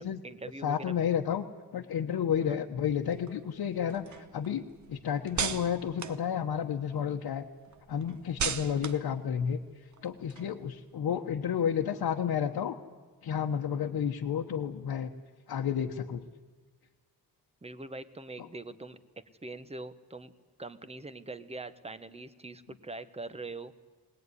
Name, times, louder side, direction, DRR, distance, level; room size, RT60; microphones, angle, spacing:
voice 1, 0.0-0.9 2.4-2.6 17.6-20.3 20.6-23.7, right 2 dB, 15° right, 12 dB, 1.0 m, -43 dB
voice 2, 0.6-1.4 1.7-7.4 7.9-9.6 10.0-12.8 13.2-15.1 15.5-16.2, left 8 dB, 70° left, 1 dB, 1.2 m, -31 dB
sound 1, 2.9-7.0 7.4-10.9, right 7 dB, 50° right, 1.0 m, -39 dB
22.5 x 19.5 x 9.7 m, 1.4 s
wide cardioid pair, 170°, 38 cm